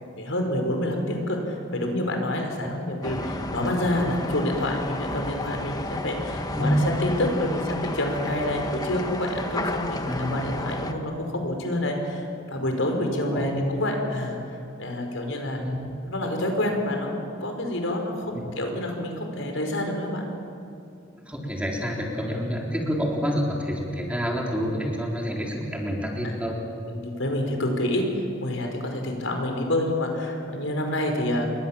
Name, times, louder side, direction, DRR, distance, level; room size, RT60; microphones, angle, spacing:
voice 1, 0.2-14.4 14.8-15.6 16.0-20.2 22.3-22.4 26.2-26.3 26.9-28.0 28.4-31.5, left 1 dB, 80° left, 3 dB, 5.0 m, -28 dB
sound 1, 3.0-10.9, left 1 dB, 20° left, 1.4 m, -32 dB
voice 2, 10.1-10.4 13.3-13.6 15.6-16.0 18.3-18.4 21.3-26.6, equal, 5° right, -1 dB, 3.8 m, -28 dB
28.5 x 22.5 x 7.3 m, 2.5 s
head